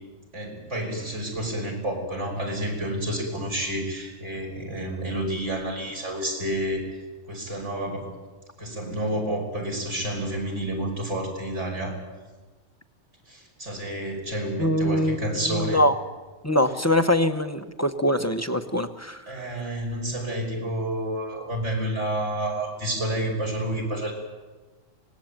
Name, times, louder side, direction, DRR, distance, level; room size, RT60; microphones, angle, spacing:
voice 1, 0.3-7.0 7.3-8.1 8.6-12.0 13.3-15.8 19.3-24.1, right 1 dB, 55° right, 1 dB, 6.1 m, -29 dB
voice 2, 14.6-15.3 15.7-15.9 16.4-19.2, left 1 dB, 15° left, 9 dB, 0.9 m, -23 dB
25.0 x 19.5 x 9.1 m, 1.2 s
omnidirectional pair, 1.4 m